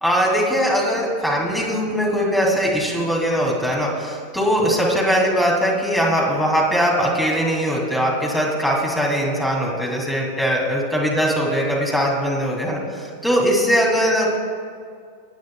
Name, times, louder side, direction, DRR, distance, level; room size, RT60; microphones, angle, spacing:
voice 1, 0.0-14.4, equal, 5° left, -2 dB, 2.2 m, -20 dB
24.5 x 9.2 x 2.2 m, 2.1 s
figure-of-eight pair, 90°, 0 cm